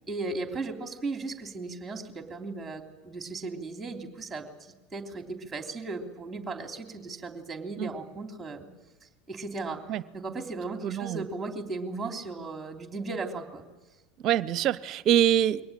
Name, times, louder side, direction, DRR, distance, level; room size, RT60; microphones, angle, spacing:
voice 1, 0.1-8.7 9.0-9.8 10.1-13.6, right 3 dB, 15° right, 4 dB, 3.4 m, -36 dB
voice 2, 10.8-11.3 14.2-15.6, right 10 dB, 45° right, 18 dB, 0.8 m, -24 dB
23.0 x 18.5 x 8.8 m, 1.2 s
hypercardioid pair, 80°, 0 cm